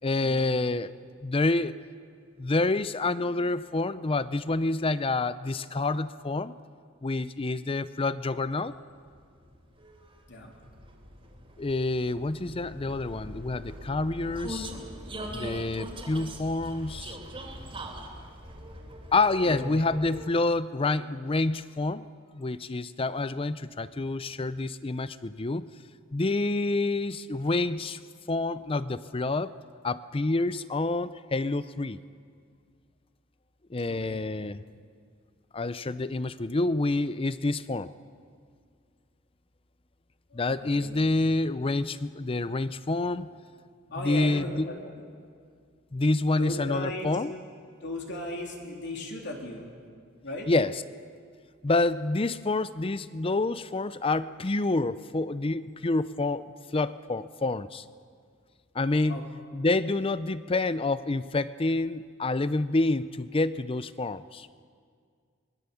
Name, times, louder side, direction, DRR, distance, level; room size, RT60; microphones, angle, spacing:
voice 1, 0.0-0.9 1.2-1.8 2.4-6.5 7.0-8.7 11.6-14.7 15.3-17.2 19.1-22.1 22.3-25.6 26.1-28.0 28.3-29.5 29.8-32.0 33.7-34.6 35.5-37.9 40.3-43.3 44.0-44.7 45.9-47.3 50.5-50.8 51.6-57.8 58.7-59.2 59.5-64.5, left 2 dB, 25° left, 15 dB, 0.5 m, -28 dB
Vehicle, 8.7-20.6, right 1 dB, 25° right, 3.2 m, -42 dB
voice 2, 19.4-19.8 33.9-34.2 40.3-41.1 43.9-44.9 46.4-47.1 47.8-49.7 50.2-50.5 59.1-59.2, left 1 dB, 55° left, 0 dB, 3.4 m, -37 dB
25.0 x 21.0 x 7.0 m, 2.1 s
head